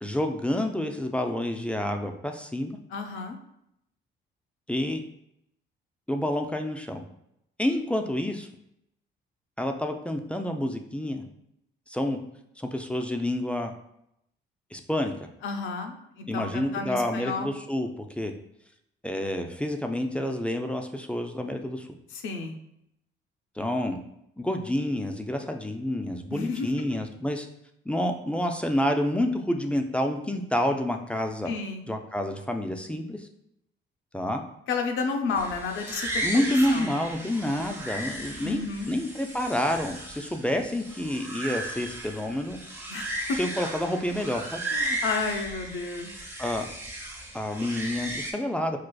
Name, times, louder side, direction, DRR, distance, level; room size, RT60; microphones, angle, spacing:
voice 1, 0.0-2.8 4.7-5.0 6.1-7.0 7.6-8.5 9.6-11.3 11.9-12.2 12.6-13.7 14.7-15.1 16.3-18.3 19.0-21.9 23.6-24.0 24.4-27.5 27.9-31.5 31.9-33.3 34.1-34.4 36.2-42.6 43.4-44.6 46.4-46.7 47.3-48.8, left 1 dB, 5° left, 4 dB, 0.3 m, -28 dB
voice 2, 2.9-3.4 15.4-17.5 22.1-22.6 26.3-26.7 31.5-31.9 34.7-36.4 36.7-36.9 38.4-38.9 42.9-43.4 44.7-46.1, left 4 dB, 80° left, 4 dB, 0.5 m, -31 dB
sound 1, 35.4-48.3, right 1 dB, 10° right, 0.8 m, -35 dB
4.6 x 2.4 x 2.2 m, 0.78 s
cardioid pair, 90°, 20 cm